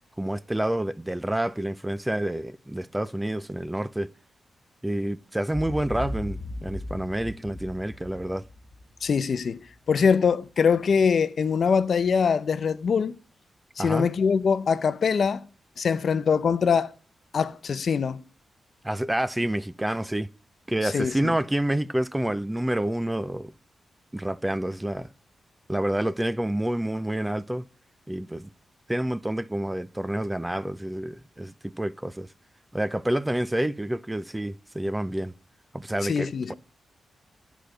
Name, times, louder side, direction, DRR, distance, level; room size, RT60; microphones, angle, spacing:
voice 1, 0.2-4.1 4.8-8.4 13.8-14.1 18.8-20.3 20.7-23.5 24.1-25.1 25.7-27.7 28.1-28.5 28.9-32.3 32.7-35.3 35.7-36.5, right 1 dB, 10° right, 0.4 m, -28 dB
Boom, 5.5-9.8, left 1 dB, 40° left, 1.8 m, -37 dB
voice 2, 9.0-9.6 9.9-13.1 13.8-15.5 15.8-16.9 17.3-18.2 20.8-21.3 36.0-36.5, left 6 dB, 60° left, 0.6 m, -23 dB
10.0 x 5.0 x 7.7 m
cardioid pair, 95°, 0 cm